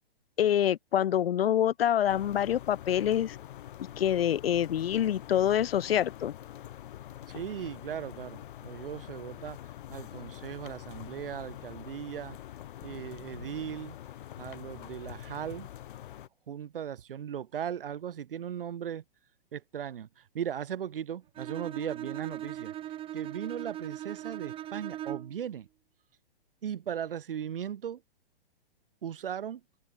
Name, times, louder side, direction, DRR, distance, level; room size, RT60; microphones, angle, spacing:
voice 1, 0.4-3.4 4.0-6.3, left 10 dB, 85° left, 0.5 m, -26 dB
sound 1, 2.1-16.3, left 12 dB, 60° left, 1.8 m, -45 dB
voice 2, 7.3-9.6 9.9-12.4 12.8-14.0 14.4-15.7 16.5-19.0 19.5-22.7 23.1-25.7 26.6-28.0 29.0-29.6, right 9 dB, 70° right, 6.3 m, -37 dB
Bowed string instrument, 21.3-25.4, right 12 dB, 20° right, 0.8 m, -39 dB
open air
hypercardioid pair, 120°, 29 cm